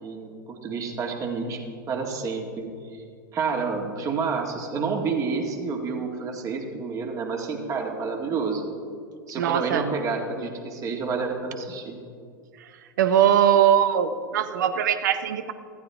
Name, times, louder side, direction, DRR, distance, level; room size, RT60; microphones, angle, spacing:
voice 1, 0.0-1.6 1.9-3.0 3.3-8.6 9.3-12.0, right 4 dB, 30° right, 2 dB, 2.0 m, -29 dB
voice 2, 9.4-9.8 13.0-15.5, right 9 dB, 60° right, 10 dB, 0.9 m, -21 dB
14.5 x 14.5 x 3.6 m, 2.1 s
figure-of-eight pair, 90°, 11 cm